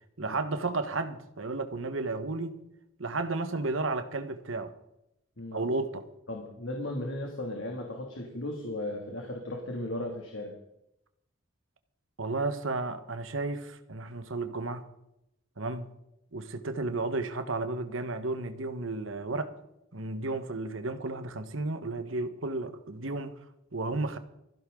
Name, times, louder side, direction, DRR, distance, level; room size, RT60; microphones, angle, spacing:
voice 1, 0.2-2.6 3.0-4.7 5.5-6.0 12.2-14.9 15.6-15.9 16.3-19.5 19.9-23.3 23.7-24.2, right 3 dB, 85° right, 1.5 m, -33 dB
voice 2, 6.3-10.5, left 1 dB, 80° left, 2.6 m, -36 dB
20.5 x 15.5 x 3.9 m
head